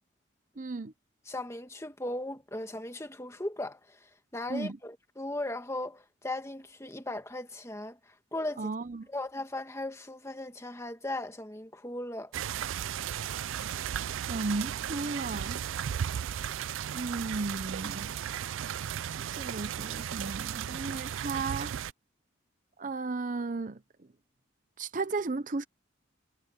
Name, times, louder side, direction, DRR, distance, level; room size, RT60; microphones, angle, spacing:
voice 1, 0.6-0.9 4.5-4.8 8.6-9.1 14.3-15.6 16.9-18.1 19.1-21.7 22.8-23.8 24.8-25.6, right 3 dB, 40° right, 0.7 m, -35 dB
voice 2, 1.3-4.0 4.3-8.0 8.3-8.7 9.1-12.3, left 1 dB, 15° left, 1.6 m, -37 dB
sound 1, 12.3-21.9, right 9 dB, 80° right, 0.4 m, -35 dB
head